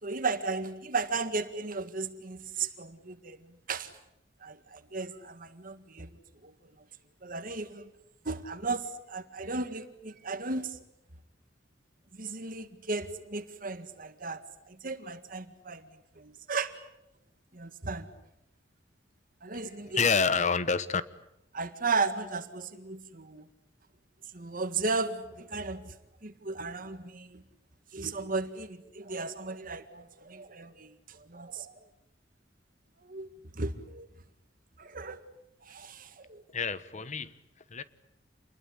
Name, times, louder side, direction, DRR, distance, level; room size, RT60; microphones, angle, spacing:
voice 1, 0.0-3.9 4.4-6.7 7.2-7.9 8.3-10.8 12.2-16.9 17.5-18.1 19.4-20.0 21.5-23.5 24.3-25.9 26.2-27.4 27.9-31.8 33.0-33.3 33.5-34.1 34.8-35.2 35.6-36.4, right 3 dB, 50° right, 1.8 m, -35 dB
voice 2, 19.9-21.0 36.5-37.3 37.7-37.8, left 5 dB, 40° left, 1.3 m, -27 dB
28.0 x 21.5 x 10.0 m
head